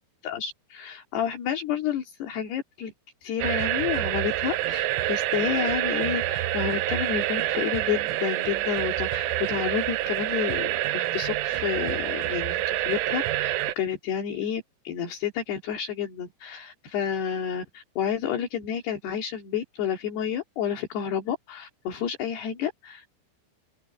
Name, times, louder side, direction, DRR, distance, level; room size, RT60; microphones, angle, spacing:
voice 1, 0.2-2.9 3.2-23.2, left 8 dB, 60° left, 4.6 m, -30 dB
sound 1, 3.4-13.8, right 15 dB, 85° right, 3.5 m, -27 dB
open air
omnidirectional pair, 5.5 m